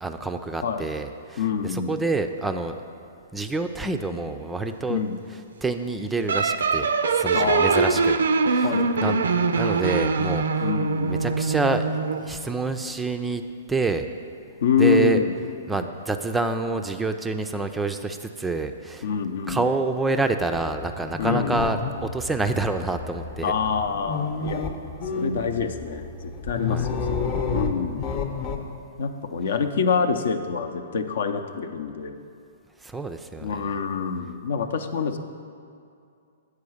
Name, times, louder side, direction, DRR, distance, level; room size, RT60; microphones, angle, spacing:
voice 1, 0.0-2.7 3.3-5.0 5.6-8.2 8.5-8.7 9.0-10.6 11.1-13.4 13.7-14.1 14.8-15.2 15.7-19.1 19.5-23.5 26.7-26.9 32.8-33.7, right 3 dB, 10° right, 7 dB, 0.4 m, -27 dB
voice 2, 1.4-2.0 4.9-5.2 7.3-8.0 8.6-9.2 10.6-11.2 14.6-15.3 19.0-19.7 21.2-21.6 23.4-24.7 25.2-28.0 29.0-32.2 33.4-35.2, left 6 dB, 65° left, 8 dB, 0.6 m, -26 dB
sound 1, 6.3-12.3, right 4 dB, 75° right, 0.4 m, -23 dB
sound 2, 20.5-28.7, left 4 dB, 35° left, 0.8 m, -31 dB
8.4 x 4.8 x 6.4 m, 2.4 s
hypercardioid pair, 125°, 0 cm